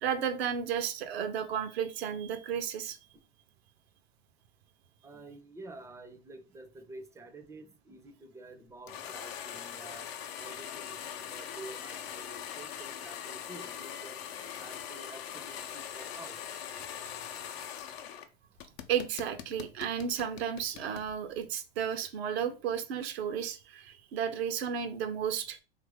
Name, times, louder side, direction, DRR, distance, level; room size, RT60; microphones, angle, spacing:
voice 1, 0.0-3.0 18.9-25.6, right 8 dB, 80° right, 8 dB, 0.6 m, -33 dB
voice 2, 5.0-10.1 10.4-14.2 14.6-16.4, right 2 dB, 10° right, 7 dB, 0.4 m, -49 dB
sound 1, 8.9-18.3 18.6-21.1, left 9 dB, 80° left, 0.6 m, -42 dB
2.9 x 2.5 x 3.4 m, 0.33 s
hypercardioid pair, 100°, 31 cm